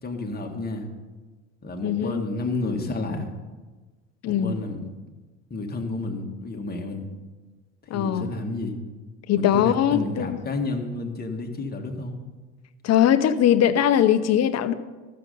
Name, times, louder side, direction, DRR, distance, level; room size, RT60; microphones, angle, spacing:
voice 1, 0.0-0.9 1.6-3.3 4.3-4.9 5.5-7.1 7.9-8.8 9.3-12.2, left 2 dB, 25° left, 2 dB, 1.9 m, -30 dB
voice 2, 1.8-2.2 4.2-4.5 7.9-8.3 9.3-10.4 12.8-14.7, left 10 dB, 45° left, 12 dB, 0.8 m, -21 dB
14.0 x 6.7 x 5.4 m, 1.3 s
hypercardioid pair, 80°, 38 cm